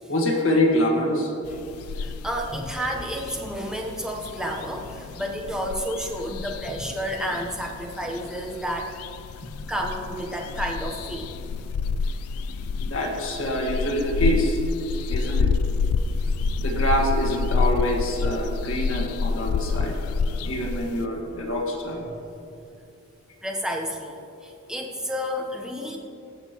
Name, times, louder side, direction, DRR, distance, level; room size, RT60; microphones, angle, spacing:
voice 1, 0.1-1.3 12.9-14.6 15.1-15.5 16.3-19.9 20.4-22.0, equal, 60° left, 0 dB, 1.7 m, -25 dB
sound 1, 1.5-21.1, left 4 dB, 80° left, 0.3 m, -28 dB
voice 2, 1.6-8.9 9.7-11.3 15.9-16.0 17.7-17.8 23.4-26.0, equal, 5° right, 0 dB, 0.9 m, -31 dB
19.5 x 6.8 x 3.0 m, 2.6 s
head